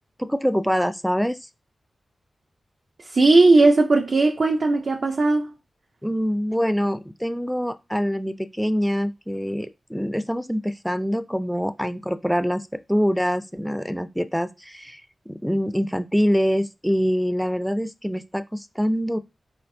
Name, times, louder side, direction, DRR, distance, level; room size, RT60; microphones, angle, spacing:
voice 1, 0.2-1.4 6.0-15.0 15.3-19.2, equal, ahead, 0.4 m, -25 dB
voice 2, 3.0-5.5, right 3 dB, 60° right, 0.6 m, -17 dB
4.3 x 4.0 x 2.7 m
cardioid pair, 65°, 0 cm